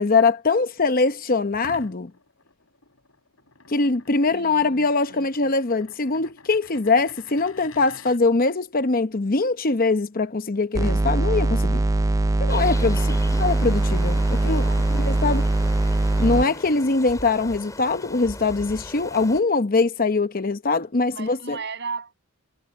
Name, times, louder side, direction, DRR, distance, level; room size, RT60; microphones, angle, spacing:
voice 1, 0.0-2.1 3.7-11.8 12.4-13.1 13.4-14.2 14.4-15.5 16.2-21.6, left 3 dB, 40° left, 0.8 m, -22 dB
sound 1, 1.5-8.2, left 4 dB, 70° left, 7.3 m, -48 dB
voice 2, 4.3-5.5 12.9-13.4 14.4-14.9 21.1-22.1, right 4 dB, 55° right, 7.9 m, -37 dB
sound 2, 10.7-16.5, right 2 dB, 15° right, 0.3 m, -21 dB
sound 3, 12.5-19.4, left 2 dB, 15° left, 5.6 m, -39 dB
head